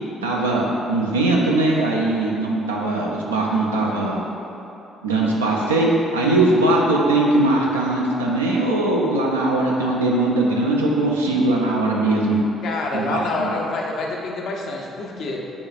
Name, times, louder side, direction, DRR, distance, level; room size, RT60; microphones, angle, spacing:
voice 1, 0.2-4.2 5.0-12.4 12.9-13.5, right 2 dB, 85° right, -3 dB, 0.5 m, -20 dB
voice 2, 12.6-15.4, left 3 dB, 60° left, -1 dB, 0.6 m, -27 dB
7.0 x 3.2 x 2.4 m, 3.0 s
hypercardioid pair, 45°, 0 cm